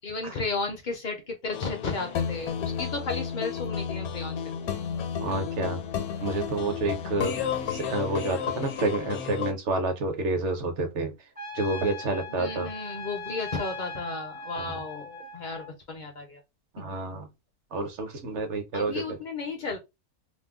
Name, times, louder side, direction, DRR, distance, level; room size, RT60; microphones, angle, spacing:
voice 1, 0.0-4.4 11.8-11.9 12.1-16.4 16.8-16.9 18.7-19.8, left 3 dB, 60° left, 0.5 m, -34 dB
sound 1, 1.5-9.5, left 7 dB, 75° left, 1.0 m, -32 dB
voice 2, 5.2-5.8 6.2-7.3 7.7-11.1 11.5-12.7 14.6-14.8 16.7-17.3 17.7-19.2, right 2 dB, 60° right, 0.9 m, -29 dB
Trumpet, 11.3-15.7, left 3 dB, 10° right, 0.4 m, -39 dB
2.6 x 2.1 x 3.5 m
omnidirectional pair, 1.6 m